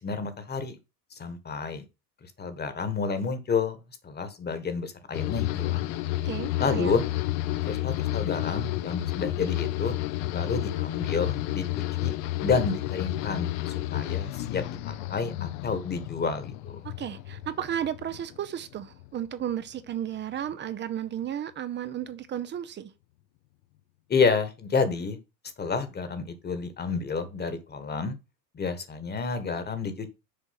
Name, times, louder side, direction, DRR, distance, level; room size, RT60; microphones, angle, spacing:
voice 1, 0.0-0.8 1.1-1.8 2.4-3.8 4.0-5.9 6.6-7.0 7.6-9.9 10.3-12.1 12.4-16.8 24.1-25.2 25.6-28.2 28.5-30.1, left 5 dB, 20° left, 1.5 m, -30 dB
sound 1, 5.1-18.5 18.8-19.4, left 16 dB, 50° left, 0.8 m, -31 dB
voice 2, 6.2-7.0 16.8-22.9, right 10 dB, 20° right, 0.7 m, -33 dB
6.9 x 4.6 x 5.8 m
hypercardioid pair, 95°, 50 cm